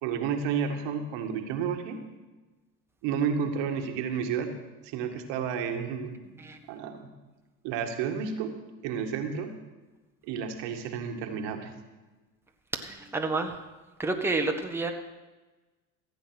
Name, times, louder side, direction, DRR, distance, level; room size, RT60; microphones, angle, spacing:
voice 1, 0.0-2.0 3.0-4.5 4.8-6.2 6.7-7.1 7.6-8.6 8.8-9.6 10.2-11.7, right 7 dB, 65° right, 5 dB, 1.8 m, -31 dB
voice 2, 12.7-13.6 14.0-14.9, right 3 dB, 5° right, 3 dB, 1.4 m, -29 dB
15.5 x 8.2 x 6.2 m, 1.2 s
hypercardioid pair, 80°, 46 cm